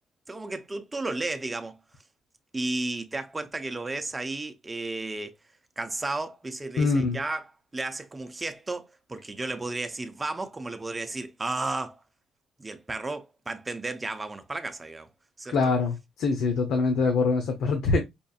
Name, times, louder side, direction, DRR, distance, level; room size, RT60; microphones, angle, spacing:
voice 1, 0.3-1.8 2.5-5.4 5.8-12.0 12.6-15.1 15.4-15.7, right 2 dB, 20° right, 0.6 m, -33 dB
voice 2, 6.8-7.2 15.5-18.0, left 4 dB, 80° left, 0.7 m, -24 dB
5.2 x 2.5 x 2.3 m
cardioid pair, 90°, 0 cm